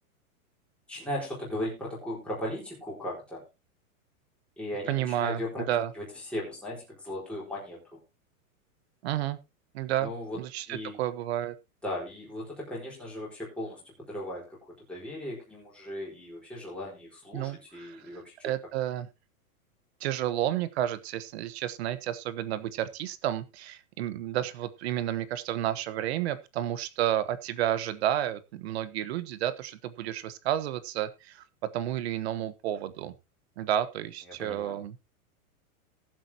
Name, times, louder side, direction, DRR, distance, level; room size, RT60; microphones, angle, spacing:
voice 1, 0.9-3.4 4.6-8.0 10.0-10.4 10.7-11.0 11.8-18.5 34.3-34.8, left 1 dB, 5° left, -5 dB, 4.3 m, -37 dB
voice 2, 4.9-5.9 9.0-9.4 9.7-11.5 17.3-18.0 18.4-19.1 20.0-31.4 31.7-33.1 33.6-35.0, right 12 dB, 45° right, 14 dB, 1.2 m, -31 dB
19.0 x 7.6 x 2.8 m, 0.26 s
supercardioid pair, 165°, 43 cm